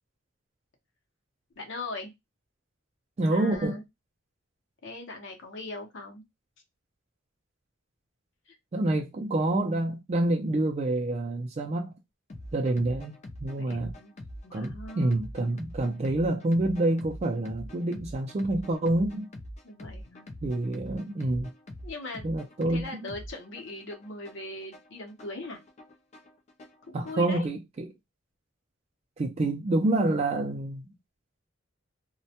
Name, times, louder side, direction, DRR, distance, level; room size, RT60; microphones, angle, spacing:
voice 1, 1.6-2.1 3.2-3.8 4.8-6.2 8.5-8.6 13.7-14.1 14.4-15.3 19.6-20.3 21.8-22.4 22.7-25.6 26.8-27.5, left 2 dB, 65° left, 0.7 m, -40 dB
voice 2, 3.2-3.8 8.7-11.9 12.5-14.0 14.5-19.3 20.4-21.5 22.2-23.0 26.9-27.9 29.2-30.9, right 2 dB, 30° right, 0.3 m, -27 dB
sound 1, 12.3-27.3, left 1 dB, 35° left, 0.4 m, -44 dB
2.1 x 2.1 x 2.7 m
head